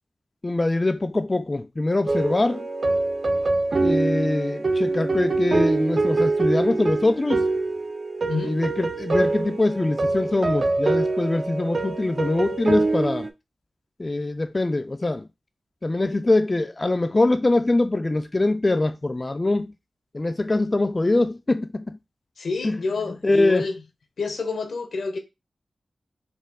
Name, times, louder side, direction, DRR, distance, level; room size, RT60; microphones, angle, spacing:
voice 1, 0.4-2.7 3.8-7.4 8.4-13.3 14.0-15.3 15.8-19.7 20.1-22.0 22.6-22.8 23.2-23.7, left 2 dB, 30° left, 0.3 m, -23 dB
sound 1, 2.1-13.3, right 3 dB, 55° right, 0.5 m, -24 dB
voice 2, 8.3-8.6 22.4-23.8 24.2-25.2, left 4 dB, 85° left, 0.8 m, -28 dB
4.3 x 2.3 x 3.5 m
wide cardioid pair, 85°, 0 cm